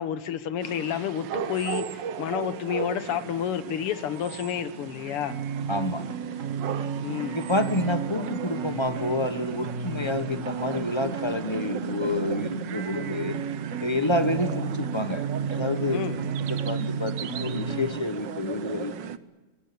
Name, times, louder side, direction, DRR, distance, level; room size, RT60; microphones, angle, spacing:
voice 1, 0.0-5.4 7.0-7.4 15.9-16.2, left 9 dB, 85° left, 2.1 m, -30 dB
sound 1, 0.6-19.2, right 8 dB, 60° right, 1.5 m, -37 dB
sound 2, 5.3-17.9, right 5 dB, 40° right, 1.7 m, -33 dB
voice 2, 5.7-6.0 7.3-13.4 13.8-15.2 15.5-16.0 16.5-19.0, left 2 dB, 15° left, 1.0 m, -28 dB
22.0 x 21.5 x 8.6 m
omnidirectional pair, 2.4 m